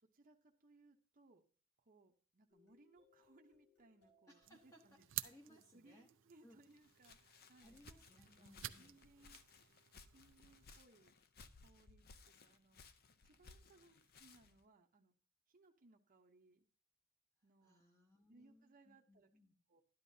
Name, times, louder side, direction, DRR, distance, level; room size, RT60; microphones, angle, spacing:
voice 1, 0.1-1.4 1.8-5.1 5.5-7.8 8.3-11.2 11.5-12.8 13.2-15.1 15.5-16.7 17.4-17.8 18.3-19.3 19.7-19.8, right 2 dB, 40° right, 2 dB, 0.8 m, -68 dB
sound 1, 2.5-7.0, left 4 dB, 70° left, 5.4 m, -76 dB
voice 2, 4.3-6.1 6.4-6.6 7.6-9.0 17.6-19.5, equal, 15° left, 0 dB, 1.0 m, -65 dB
sound 2, 4.4-10.8, right 14 dB, 65° right, 0.5 m, -52 dB
Walk footsteps, 6.7-14.6, left 4 dB, 45° left, 0.6 m, -63 dB
12.0 x 10.0 x 2.7 m, 0.41 s
head